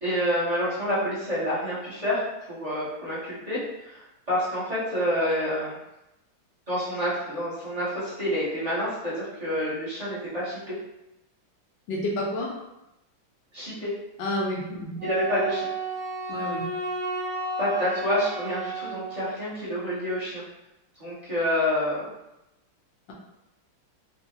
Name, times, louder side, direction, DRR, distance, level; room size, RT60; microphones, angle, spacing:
voice 1, 0.0-5.8 6.7-10.8 13.5-13.9 15.0-15.7 17.6-20.4 21.0-22.1, equal, 30° right, -11 dB, 0.8 m, -28 dB
voice 2, 11.9-12.5 14.2-14.9 16.3-16.6, left 1 dB, 70° left, -2 dB, 1.2 m, -29 dB
Wind instrument woodwind instrument, 15.0-19.3, right 2 dB, 80° right, 0.7 m, -32 dB
3.6 x 2.3 x 2.8 m, 0.90 s
omnidirectional pair, 2.3 m